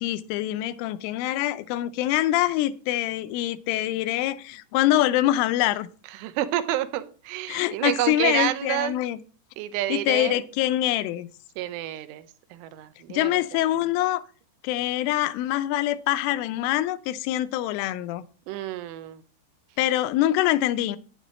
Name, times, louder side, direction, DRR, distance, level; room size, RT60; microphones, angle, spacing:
voice 1, 0.0-5.9 7.5-9.2 9.9-11.3 13.1-14.2 14.6-18.2 19.8-21.0, left 14 dB, 85° left, 3.2 m, -24 dB
voice 2, 6.2-8.9 9.6-10.4 11.6-12.2 12.5-13.4 18.5-19.2, right 14 dB, 85° right, 3.3 m, -29 dB
12.0 x 9.9 x 3.1 m
omnidirectional pair, 5.6 m